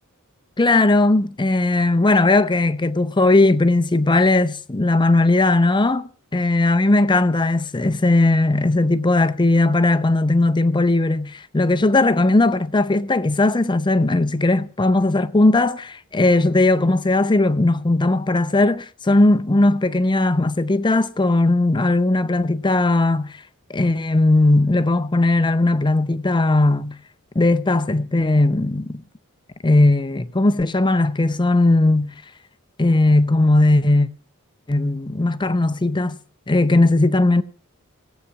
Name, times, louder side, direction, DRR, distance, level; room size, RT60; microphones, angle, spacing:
voice 1, 0.6-23.3 23.7-27.0 27.3-29.0 29.6-32.1 32.8-34.1 34.7-36.2 36.5-37.4, left 2 dB, 20° left, 0.6 m, -18 dB
17.5 x 8.3 x 5.8 m
head